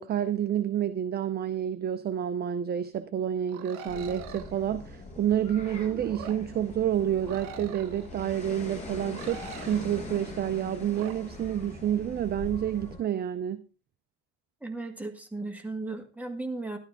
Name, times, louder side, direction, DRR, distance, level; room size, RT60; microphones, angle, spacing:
voice 1, 0.0-13.6, right 10 dB, 25° right, 0.5 m, -29 dB
volpiline calls, 3.5-4.5 5.6-6.4 7.3-8.1 9.1-9.9 10.9-11.1, right 6 dB, 85° right, 1.9 m, -44 dB
sound 1, 3.8-13.0, left 2 dB, 15° left, 6.1 m, -42 dB
voice 2, 14.6-16.8, right 2 dB, 5° right, 1.8 m, -36 dB
12.5 x 12.0 x 3.6 m
cardioid pair, 135°, 44 cm